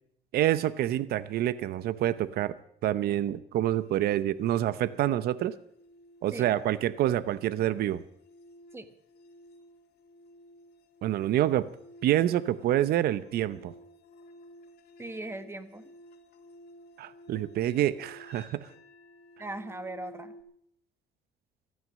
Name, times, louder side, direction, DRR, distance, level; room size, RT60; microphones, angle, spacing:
voice 1, 0.3-2.6 2.8-5.6 6.2-8.0 11.0-11.7 12.0-13.7 17.0-18.7, right 12 dB, 65° right, 16 dB, 0.7 m, -27 dB
sound 1, 3.8-20.4, equal, 70° left, 2.1 m, -54 dB
voice 2, 15.0-15.9 19.4-20.3, right 2 dB, 15° right, 11 dB, 1.3 m, -39 dB
15.0 x 13.0 x 6.3 m, 0.68 s
cardioid pair, 110°, 17 cm